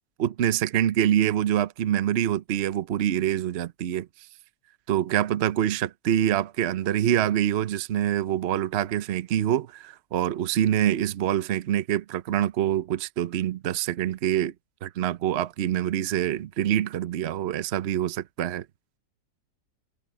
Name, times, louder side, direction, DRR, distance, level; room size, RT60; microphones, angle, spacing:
voice 1, 0.2-4.1 4.9-14.5 14.8-18.6, right 11 dB, 60° right, 0.7 m, -25 dB
omnidirectional pair, 1.9 m